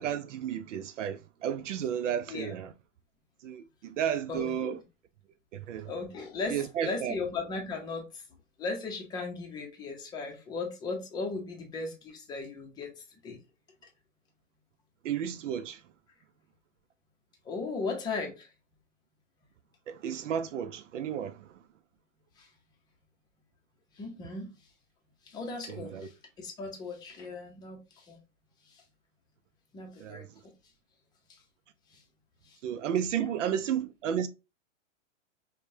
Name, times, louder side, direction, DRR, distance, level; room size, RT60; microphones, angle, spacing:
voice 1, 0.0-2.7 3.4-4.8 5.5-5.9 6.5-7.1 15.0-15.8 19.9-21.5 25.7-26.1 30.0-30.3 32.6-34.3, right 9 dB, 70° right, 0.5 m, -32 dB
voice 2, 2.3-2.6 4.3-4.8 5.9-8.2 8.6-12.9 13.2-13.4 17.4-18.5 22.4-22.5 24.0-24.5 25.3-28.2 28.7-28.8 29.7-30.5 31.3-31.4 31.9-32.0 32.4-32.6 33.4-33.5, left 3 dB, 10° left, 0.6 m, -37 dB
5.1 x 2.2 x 2.7 m
hypercardioid pair, 145°, 38 cm